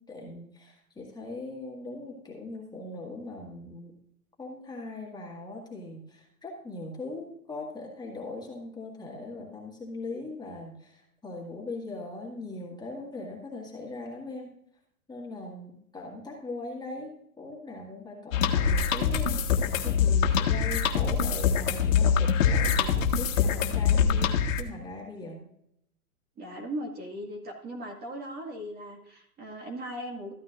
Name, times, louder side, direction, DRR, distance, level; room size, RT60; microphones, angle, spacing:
voice 1, 0.0-4.0 4.4-14.6 15.1-25.5, left 2 dB, 10° left, -3 dB, 1.9 m, -40 dB
sound 1, 18.3-24.6, left 7 dB, 60° left, 1.5 m, -24 dB
voice 2, 26.4-30.3, right 1 dB, 20° right, 1 dB, 2.1 m, -38 dB
14.0 x 9.3 x 2.5 m, 0.74 s
hypercardioid pair, 130°, 44 cm